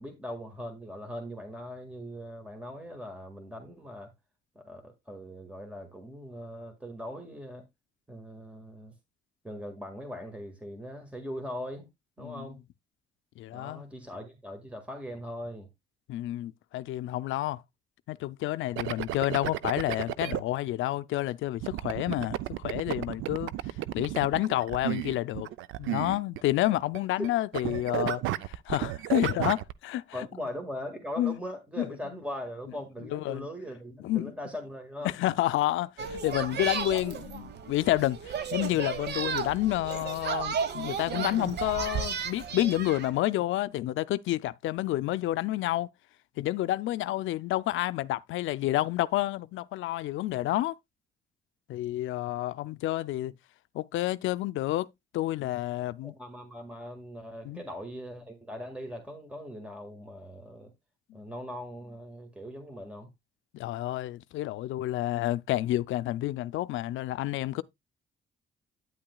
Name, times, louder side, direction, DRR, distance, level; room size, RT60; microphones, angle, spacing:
voice 1, 0.0-4.1 4.6-7.7 8.1-8.9 9.4-11.9 12.2-12.6 13.5-15.7 30.1-35.1 36.9-37.2 56.0-60.7 61.1-63.1, equal, 5° right, 1.8 m, -40 dB
voice 2, 13.4-13.8 16.1-17.6 18.1-23.5 23.9-25.5 25.8-30.3 31.2-31.4 31.8-32.0 33.1-33.5 34.0-34.3 35.0-45.9 46.4-50.7 51.7-53.3 53.7-54.9 55.1-56.1 57.4-57.6 61.1-61.2 63.5-67.6, left 15 dB, 80° left, 0.5 m, -29 dB
sound 1, 18.8-20.4 21.6-27.3 27.5-29.7, right 14 dB, 85° right, 0.5 m, -33 dB
sound 2, 36.0-43.1, right 6 dB, 60° right, 1.1 m, -34 dB
9.4 x 8.8 x 2.3 m
cardioid pair, 90°, 20 cm